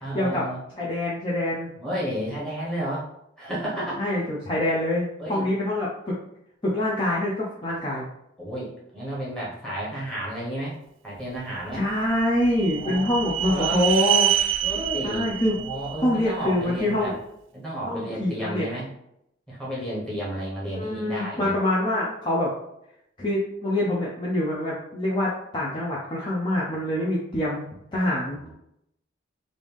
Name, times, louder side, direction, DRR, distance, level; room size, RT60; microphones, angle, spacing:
voice 1, 0.0-0.6 1.8-3.1 3.4-4.1 5.2-5.5 8.4-10.8 11.0-11.8 12.8-13.8 14.6-15.2 15.6-17.1 17.5-18.9 19.5-21.5 28.3-28.5, right 1 dB, 5° left, -7 dB, 1.3 m, -32 dB
voice 2, 0.8-1.7 4.0-6.1 6.6-8.1 11.7-14.3 15.0-15.6 16.0-17.2 17.9-18.6 20.7-22.5 23.2-27.7 27.9-28.5, left 1 dB, 25° left, -6 dB, 0.6 m, -25 dB
sound 1, 11.7-16.9, right 11 dB, 75° right, 0.3 m, -27 dB
3.3 x 2.6 x 3.4 m, 0.78 s
head